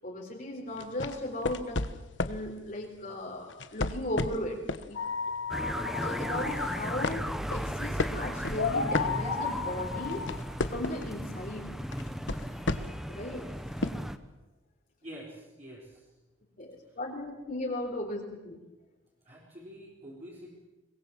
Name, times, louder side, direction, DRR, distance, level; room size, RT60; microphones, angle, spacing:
voice 1, 0.0-1.8 2.2-4.6 4.9-5.0 5.9-7.2 7.5-10.2 10.7-11.7 13.1-13.4 16.6-18.6, left 1 dB, 45° left, 0 dB, 3.9 m, -36 dB
sound 1, 0.8-2.5 3.5-4.9 5.3-5.5 6.0-6.6 7.0-9.6 10.0-11.2 11.9-13.1 13.8-13.9, left 2 dB, 65° left, 1.2 m, -33 dB
sound 2, 4.9-11.5, left 5 dB, 90° left, 2.5 m, -35 dB
sound 3, 5.5-14.2, equal, ahead, 1.0 m, -36 dB
voice 2, 15.0-16.0 19.2-20.6, equal, 35° right, -5 dB, 4.6 m, -46 dB
23.0 x 21.0 x 7.5 m, 1.1 s
head